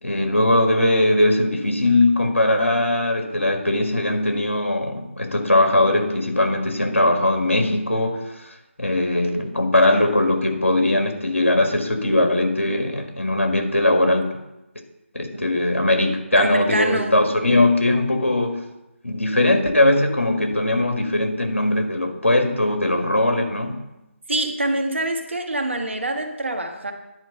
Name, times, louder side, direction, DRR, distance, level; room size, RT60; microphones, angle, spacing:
voice 1, 0.0-8.2 8.8-14.3 15.1-18.6 19.0-23.8, left 1 dB, 70° left, 4 dB, 1.6 m, -20 dB
voice 2, 16.3-17.1 24.3-26.9, right 1 dB, 60° right, 5 dB, 1.3 m, -25 dB
10.0 x 4.6 x 6.7 m, 0.94 s
figure-of-eight pair, 155°, 7 cm